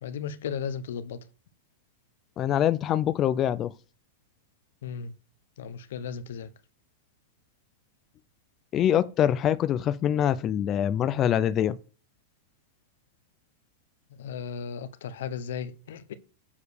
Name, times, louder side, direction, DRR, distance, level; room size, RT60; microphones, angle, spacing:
voice 1, 0.0-1.2 4.8-5.1 5.6-6.5 14.2-16.1, left 7 dB, 80° left, 0.9 m, -35 dB
voice 2, 2.4-3.7 8.7-11.8, left 10 dB, 25° left, 0.4 m, -24 dB
7.2 x 5.0 x 6.4 m
supercardioid pair, 150°, 0 cm